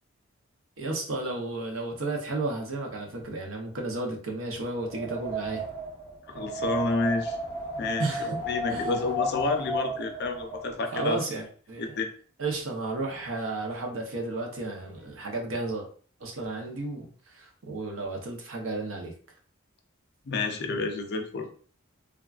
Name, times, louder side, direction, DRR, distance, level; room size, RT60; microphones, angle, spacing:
voice 1, 0.8-5.6 8.0-8.4 8.7-9.0 10.9-12.0 12.4-15.9 16.2-19.1, right 2 dB, 75° right, 1 dB, 0.7 m, -33 dB
Wind, 4.7-10.7, right 1 dB, 30° right, 1.0 m, -33 dB
voice 2, 6.3-7.4 7.7-11.2 11.8-12.1 20.2-21.5, left 3 dB, 55° left, 5 dB, 0.5 m, -30 dB
3.5 x 2.3 x 2.3 m, 0.44 s
head